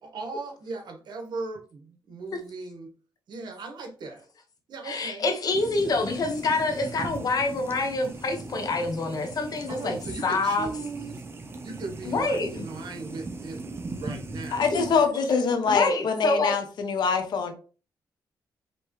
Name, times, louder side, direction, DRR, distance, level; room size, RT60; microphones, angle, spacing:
voice 1, 0.0-2.9 3.3-4.3 4.7-5.9 9.7-11.2 11.6-13.6 13.9-14.8 15.1-15.8, right 3 dB, 70° right, 1.3 m, -38 dB
voice 2, 4.8-10.0 10.2-10.7 12.0-12.7 14.7-14.9 15.7-16.5, left 3 dB, 55° left, 1.1 m, -26 dB
sound 1, 5.5-15.1, right 2 dB, 35° right, 0.7 m, -39 dB
voice 3, 14.5-17.5, left 5 dB, 75° left, 0.9 m, -24 dB
5.2 x 3.1 x 3.1 m
cardioid pair, 95°, 8 cm